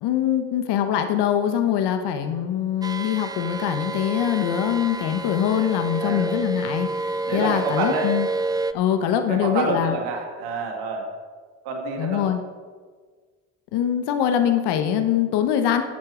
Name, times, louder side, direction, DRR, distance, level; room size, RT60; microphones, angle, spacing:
voice 1, 0.0-8.3 8.7-10.0 12.0-12.4 13.7-15.8, left 9 dB, 70° left, 7 dB, 1.2 m, -23 dB
sound 1, 2.8-8.7, right 3 dB, 10° right, 0.5 m, -29 dB
voice 2, 6.0-6.4 7.3-8.1 9.3-11.1 11.6-12.3, right 3 dB, 75° right, 1 dB, 2.3 m, -28 dB
13.0 x 7.8 x 4.9 m, 1.5 s
supercardioid pair, 65°, 41 cm